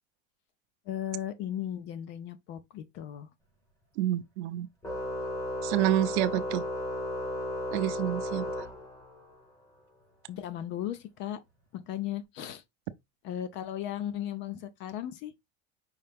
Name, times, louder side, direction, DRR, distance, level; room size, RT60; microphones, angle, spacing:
voice 1, 0.9-3.3 10.3-11.4 11.7-12.6 13.2-15.3, left 11 dB, 35° left, 0.4 m, -36 dB
voice 2, 4.0-4.7 5.6-6.6 7.7-8.5, right 13 dB, 80° right, 0.6 m, -28 dB
Organ, 4.8-9.3, left 1 dB, 10° left, 0.8 m, -34 dB
5.6 x 2.8 x 3.4 m
cardioid pair, 170°, 34 cm